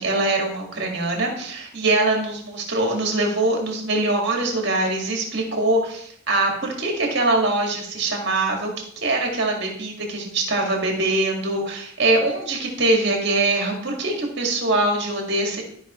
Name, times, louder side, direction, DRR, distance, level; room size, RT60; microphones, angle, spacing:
voice 1, 0.0-15.6, right 2 dB, 55° right, 1 dB, 1.9 m, -23 dB
13.0 x 5.3 x 3.1 m, 0.67 s
head